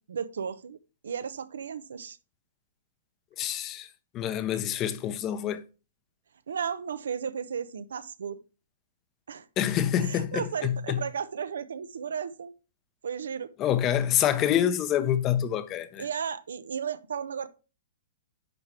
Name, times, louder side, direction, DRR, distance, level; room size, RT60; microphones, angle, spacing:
voice 1, 0.1-0.8 1.0-2.2 6.5-8.4 9.3-9.5 10.0-12.5 13.0-13.5 16.0-17.5, right 7 dB, 85° right, 0.8 m, -34 dB
voice 2, 3.4-3.9 4.1-5.6 9.6-11.0 13.6-16.0, left 10 dB, 25° left, 0.7 m, -27 dB
10.0 x 3.4 x 6.0 m
hypercardioid pair, 155°, 0 cm